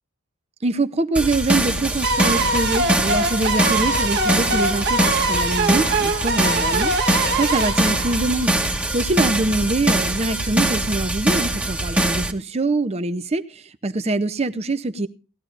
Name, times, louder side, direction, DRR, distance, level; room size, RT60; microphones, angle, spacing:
voice 1, 0.6-8.6 8.9-15.1, right 2 dB, 30° right, 0.6 m, -24 dB
sound 1, 1.1-12.3, right 1 dB, 5° right, 1.1 m, -23 dB
sound 2, 2.0-9.0, right 2 dB, 55° right, 1.3 m, -23 dB
19.0 x 13.5 x 2.5 m
head